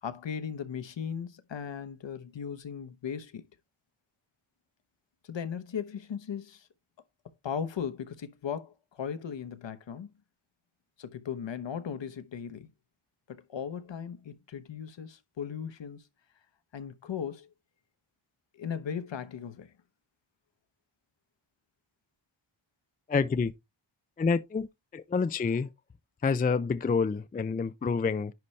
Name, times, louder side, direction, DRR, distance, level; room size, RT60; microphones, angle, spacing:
voice 1, 0.0-3.4 5.2-6.7 7.4-10.1 11.0-12.7 13.3-16.1 16.7-17.5 18.5-19.7, left 7 dB, 60° left, 1.0 m, -37 dB
voice 2, 23.1-23.5 24.2-24.7 24.9-25.7 26.2-28.3, left 5 dB, 20° left, 0.4 m, -27 dB
10.5 x 4.1 x 3.2 m
wide cardioid pair, 110°, 49 cm